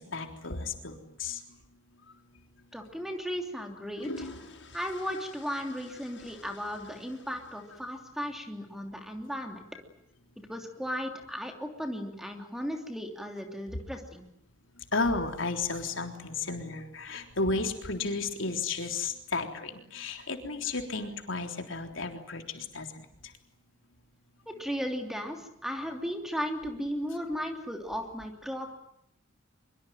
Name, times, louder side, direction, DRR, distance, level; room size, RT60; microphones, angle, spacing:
voice 1, 0.0-1.4 14.8-23.3, left 3 dB, 80° left, 4 dB, 3.7 m, -33 dB
sound 1, 2.2-2.4 3.6-8.2, left 2 dB, 65° left, 7.3 m, -47 dB
voice 2, 2.7-4.3 4.7-9.6 10.5-14.2 24.5-28.7, equal, ahead, 3 dB, 3.0 m, -36 dB
24.0 x 23.5 x 9.3 m, 0.74 s
head